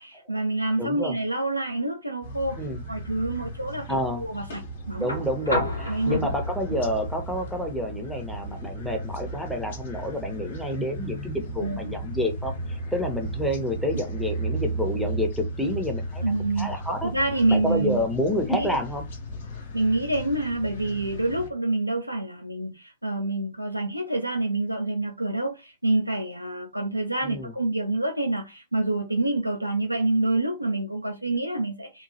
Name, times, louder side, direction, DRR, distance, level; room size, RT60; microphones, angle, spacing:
voice 1, 0.0-2.6 2.9-4.6 4.9-5.1 5.9-6.3 11.6-11.8 16.2-16.8 17.0-18.0 18.5-18.7 19.7-32.0, right 2 dB, 90° right, 0.4 m, -27 dB
voice 2, 0.8-1.2 2.6-2.8 3.9-4.3 5.0-17.1 17.5-19.1 27.2-27.5, left 1 dB, ahead, 0.6 m, -29 dB
sound 1, 2.2-21.5, right 2 dB, 55° left, 0.7 m, -35 dB
sound 2, 5.0-13.0 14.5-14.6, left 1 dB, 85° left, 0.8 m, -36 dB
2.9 x 2.2 x 2.8 m
figure-of-eight pair, 105°, 0 cm